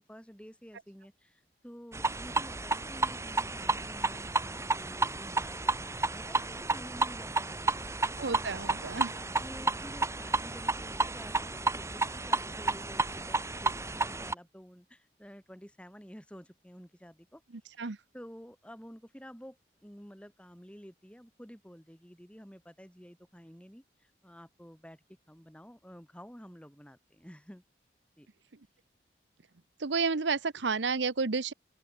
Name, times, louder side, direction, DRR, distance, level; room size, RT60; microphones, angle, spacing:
voice 1, 0.0-8.0 9.4-17.4 17.7-27.6 28.2-28.3, equal, 5° left, 6.7 m, -51 dB
sound 1, 1.9-14.3, right 3 dB, 15° right, 1.8 m, -32 dB
voice 2, 8.2-9.2 17.8-18.0 29.8-31.5, right 4 dB, 85° right, 0.9 m, -31 dB
open air
head